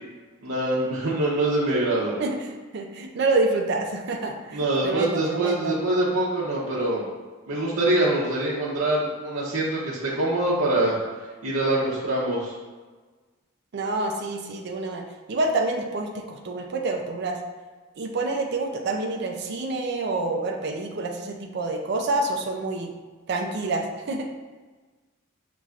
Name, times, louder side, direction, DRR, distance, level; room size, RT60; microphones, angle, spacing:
voice 1, 0.4-2.2 4.5-7.0 7.5-11.0 11.4-12.5, right 1 dB, 90° right, -8 dB, 0.8 m, -24 dB
voice 2, 2.2-5.8 13.7-15.0 15.3-17.4 18.0-22.9 23.3-24.3, right 2 dB, 50° right, 2 dB, 0.4 m, -27 dB
5.6 x 3.0 x 2.4 m, 1.3 s
head